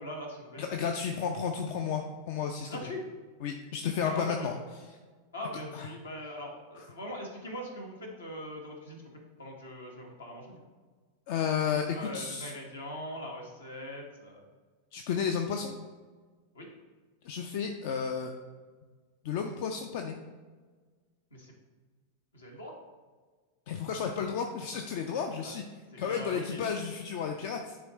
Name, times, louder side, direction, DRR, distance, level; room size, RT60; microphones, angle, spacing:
voice 1, 0.0-0.6 2.6-3.0 4.1-4.6 5.3-9.0 9.4-10.6 11.9-14.4 16.5-16.7 21.3-21.5 22.3-22.7 25.4-25.5 26.1-26.6, equal, 70° left, 0 dB, 1.4 m, -41 dB
voice 2, 0.6-2.8 3.4-4.5 4.8-4.9 5.7-5.9 11.3-12.5 14.9-15.7 17.2-18.3 19.2-20.2 23.7-25.6 26.0-27.8, left 7 dB, 50° left, 4 dB, 0.5 m, -32 dB
10.0 x 3.7 x 3.0 m, 1.4 s
figure-of-eight pair, 90°, 0 cm